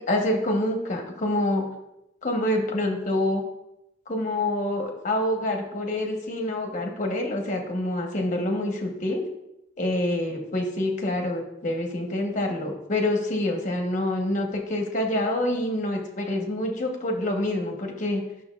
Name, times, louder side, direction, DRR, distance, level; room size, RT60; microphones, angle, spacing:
voice 1, 0.1-1.7 2.2-3.4 4.1-9.2 9.8-18.2, left 1 dB, 40° left, 2 dB, 1.0 m, -26 dB
9.4 x 6.3 x 2.3 m, 0.86 s
head